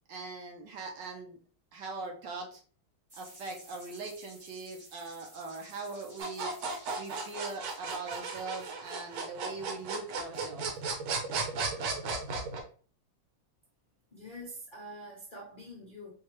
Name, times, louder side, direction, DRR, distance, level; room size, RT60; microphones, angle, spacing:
voice 1, 0.1-1.4 1.7-2.6 3.1-6.5 7.0-10.8, right 3 dB, 65° right, 1 dB, 1.3 m, -41 dB
sound 1, 3.1-9.8, right 1 dB, 25° right, 1.2 m, -55 dB
sound 2, 6.2-12.6, right 4 dB, 85° right, 1.7 m, -35 dB
voice 2, 14.1-16.1, equal, 70° left, -3 dB, 0.4 m, -45 dB
4.6 x 2.4 x 3.0 m, 0.41 s
omnidirectional pair, 2.3 m